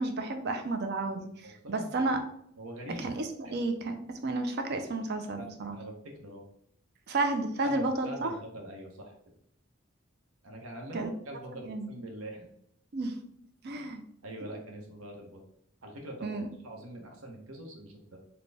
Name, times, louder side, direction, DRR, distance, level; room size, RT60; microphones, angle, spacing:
voice 1, 0.0-2.2 3.0-5.8 7.1-8.3 10.9-11.1 11.5-11.9 12.9-13.2 13.6-14.0 14.4-14.5 16.2-16.5, right 2 dB, 50° right, 7 dB, 0.5 m, -32 dB
voice 2, 1.6-2.0 2.6-3.1 3.4-3.5 5.4-6.4 7.6-9.1 10.4-12.5 14.2-15.4 15.8-18.2, right 1 dB, 90° right, 2 dB, 0.9 m, -43 dB
4.1 x 2.2 x 3.3 m, 0.69 s
head